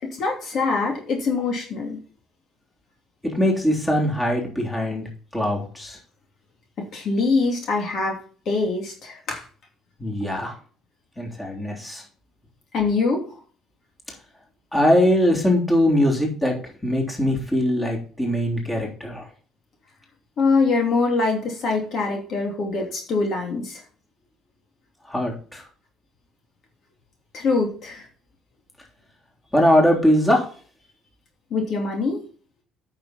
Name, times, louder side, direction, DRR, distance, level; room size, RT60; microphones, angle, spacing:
voice 1, 0.0-2.0 6.8-8.2 8.5-9.4 12.7-13.2 20.4-23.8 27.3-28.1 31.5-32.2, left 4 dB, 55° left, 1 dB, 2.8 m, -23 dB
voice 2, 3.2-6.0 10.0-10.5 11.2-12.0 14.7-19.3 25.0-25.6 29.5-30.4, left 1 dB, 10° left, -1 dB, 3.4 m, -21 dB
8.9 x 6.6 x 4.2 m, 0.41 s
cardioid pair, 115°, 0 cm